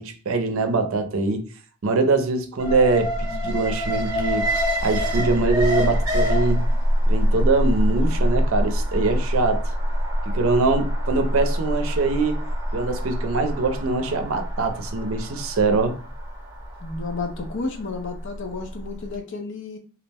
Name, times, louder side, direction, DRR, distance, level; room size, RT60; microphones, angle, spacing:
voice 1, 0.0-1.4 1.8-4.5 4.8-6.6 7.1-9.7 10.3-12.4 12.7-16.0, right 3 dB, 70° right, 0.5 m, -23 dB
Alarm, 2.6-18.7 19.0-19.1, equal, 20° right, 0.8 m, -24 dB
voice 2, 16.8-19.8, left 3 dB, 60° left, 0.6 m, -31 dB
2.3 x 2.0 x 3.3 m
head